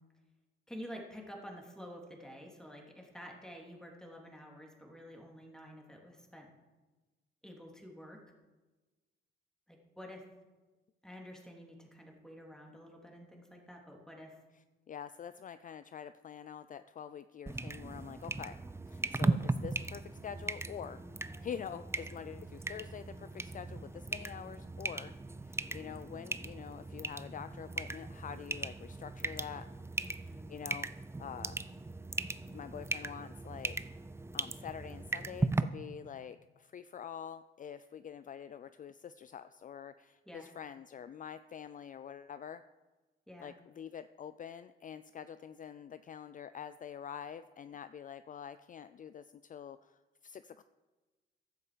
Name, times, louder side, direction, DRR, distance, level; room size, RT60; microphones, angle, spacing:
voice 1, 0.7-6.5 7.4-8.2 9.7-10.2 11.0-14.4 21.2-21.4 30.0-30.6 40.3-40.5 43.3-43.5, equal, 5° left, 0 dB, 3.3 m, -49 dB
voice 2, 14.9-18.6 18.9-21.0 21.4-25.1 25.4-29.7 30.5-30.9 31.2-31.6 32.5-33.8 34.3-42.6 43.4-50.6, left 8 dB, 40° left, 13 dB, 0.5 m, -46 dB
sound 1, 17.5-35.6, right 3 dB, 15° right, 0.6 m, -38 dB
15.0 x 11.0 x 5.2 m, 1.2 s
cardioid pair, 90°, 20 cm